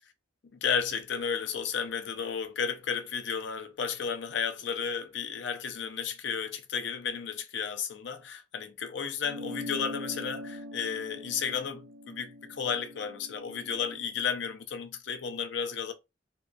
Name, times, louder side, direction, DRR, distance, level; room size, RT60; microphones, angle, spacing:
voice 1, 0.5-15.9, left 6 dB, 65° left, 0.5 m, -33 dB
sound 1, 9.2-14.0, left 1 dB, 70° right, 0.4 m, -42 dB
2.7 x 2.3 x 2.3 m
head